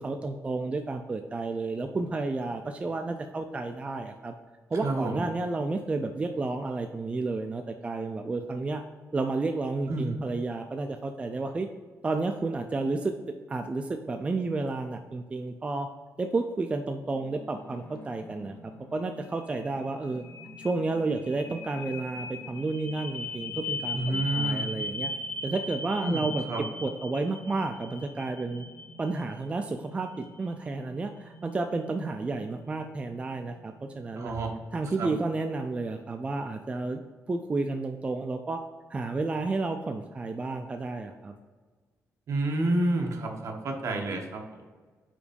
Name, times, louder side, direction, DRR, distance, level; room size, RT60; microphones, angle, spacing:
voice 1, 0.0-4.3 4.7-8.8 9.1-11.7 12.0-13.1 13.5-15.9 16.2-20.2 20.6-25.1 25.4-26.4 26.8-28.7 29.0-34.4 34.7-37.0 37.3-38.6 38.9-41.3, right 3 dB, 20° right, 6 dB, 0.3 m, -31 dB
voice 2, 4.8-5.2 9.9-10.2 23.9-24.7 26.0-26.6 34.2-34.5 35.0-35.1 42.3-44.6, right 2 dB, 60° right, 2 dB, 1.1 m, -29 dB
sound 1, 16.8-34.9, left 3 dB, 30° left, 1.5 m, -40 dB
5.0 x 4.6 x 5.1 m, 1.4 s
wide cardioid pair, 150°, 6 cm